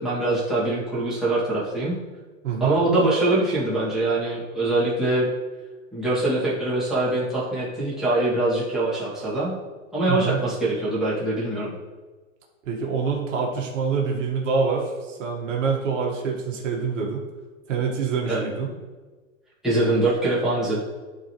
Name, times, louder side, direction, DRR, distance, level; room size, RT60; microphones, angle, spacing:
voice 1, 0.0-2.0 2.6-5.3 5.9-9.5 9.9-11.8 18.3-18.4 19.6-20.8, right 2 dB, ahead, -10 dB, 2.1 m, -23 dB
voice 2, 2.4-2.7 10.1-10.4 12.7-17.3 17.7-18.7, right 5 dB, 65° right, 0 dB, 1.7 m, -26 dB
11.5 x 4.0 x 3.1 m, 1.3 s
hypercardioid pair, 140°, 41 cm